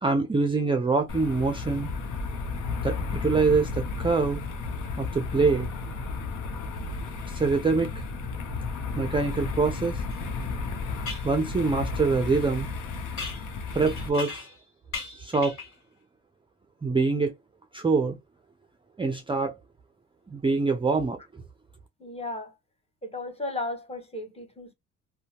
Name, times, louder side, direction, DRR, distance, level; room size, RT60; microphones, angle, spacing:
voice 1, 0.0-1.9 2.8-4.4 5.0-5.7 7.2-8.0 9.0-10.0 11.2-12.7 13.8-14.3 15.2-15.6 16.8-17.3 17.7-18.2 19.0-19.5 20.3-21.2, right 4 dB, 15° right, 0.4 m, -24 dB
sound 1, 1.1-14.1, left 4 dB, 75° left, 0.7 m, -33 dB
sound 2, 10.1-10.2 11.0-11.3 13.2-14.6 14.9-15.8, left 4 dB, 45° left, 1.8 m, -38 dB
voice 2, 22.0-22.5 23.0-24.7, left 2 dB, 20° left, 1.0 m, -35 dB
2.7 x 2.1 x 2.7 m
cardioid pair, 90°, 30 cm